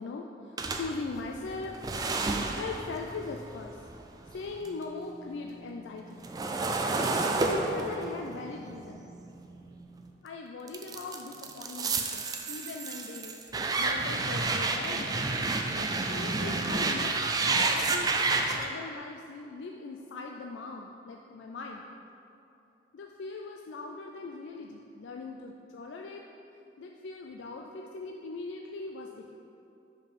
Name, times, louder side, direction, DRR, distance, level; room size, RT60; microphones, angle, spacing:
voice 1, 0.0-1.8 2.6-3.9 4.3-6.2 7.4-9.1 10.2-13.4 13.8-17.3 17.5-21.8 22.9-26.2 26.8-29.4, left 3 dB, 85° left, 1 dB, 0.4 m, -40 dB
sound 1, 0.6-4.8 5.2-10.1 10.7-18.7, right 3 dB, 20° right, 0.3 m, -30 dB
5.3 x 4.9 x 5.1 m, 2.8 s
head